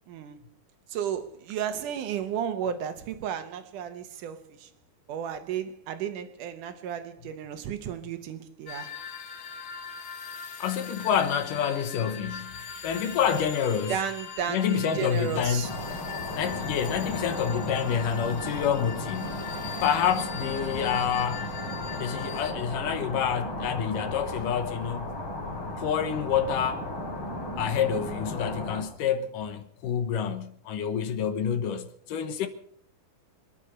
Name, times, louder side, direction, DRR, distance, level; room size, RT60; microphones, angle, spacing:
voice 1, 0.1-0.4 0.9-4.7 5.1-9.0 13.9-15.7, right 8 dB, 70° right, 2.4 m, -33 dB
sound 1, 8.7-22.5, left 6 dB, 55° left, 2.4 m, -40 dB
voice 2, 10.6-12.5 12.8-14.0 14.5-15.8 16.3-19.3 19.8-21.5 21.9-25.1 25.8-26.8 27.6-32.5, left 8 dB, 75° left, 2.6 m, -28 dB
sound 2, 15.6-28.8, left 1 dB, 35° left, 3.9 m, -35 dB
25.5 x 9.9 x 5.4 m
omnidirectional pair, 4.0 m